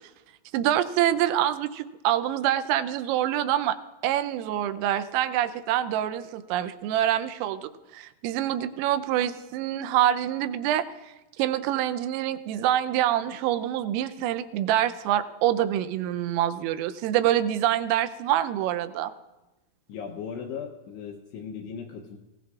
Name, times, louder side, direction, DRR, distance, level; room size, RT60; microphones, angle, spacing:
voice 1, 0.5-3.8 4.0-10.8 11.4-19.1, right 12 dB, 90° right, 11 dB, 3.3 m, -26 dB
voice 2, 19.9-22.2, left 6 dB, 80° left, 2 dB, 2.5 m, -37 dB
23.0 x 16.5 x 2.4 m, 1.1 s
omnidirectional pair, 5.8 m